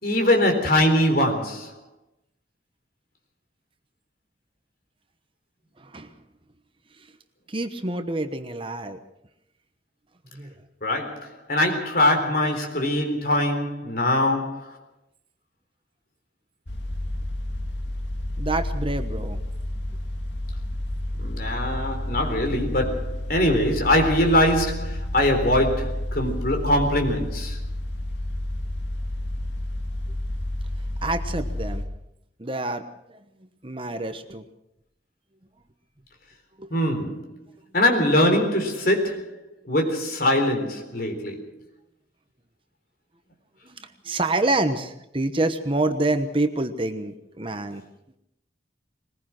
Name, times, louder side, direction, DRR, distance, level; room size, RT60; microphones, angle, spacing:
voice 1, 0.0-1.7 10.8-14.7 21.2-27.6 36.7-37.2 37.7-39.3 39.7-41.5, left 1 dB, 50° left, 3.9 m, -22 dB
voice 2, 5.8-6.1 7.0-7.1 7.5-9.0 10.3-10.5 18.4-19.4 31.0-31.8 32.4-32.9 33.1-33.2 33.6-34.4 36.6-36.8 43.6-47.8, right 2 dB, 30° right, 1.1 m, -27 dB
sound 1, 16.7-31.9, left 1 dB, 70° left, 2.0 m, -30 dB
21.5 x 20.5 x 6.1 m
head